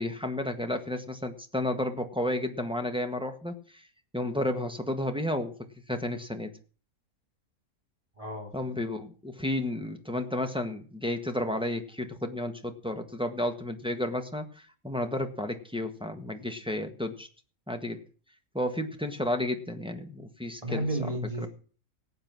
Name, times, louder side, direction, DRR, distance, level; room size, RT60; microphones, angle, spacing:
voice 1, 0.0-3.8 4.1-5.5 5.9-6.5 8.5-17.3 17.7-18.0 18.5-21.5, left 1 dB, 5° right, 5 dB, 1.4 m, -32 dB
voice 2, 8.2-8.5 20.6-21.5, right 1 dB, 20° right, 1 dB, 3.9 m, -32 dB
18.0 x 8.1 x 6.1 m, 0.40 s
omnidirectional pair, 1.6 m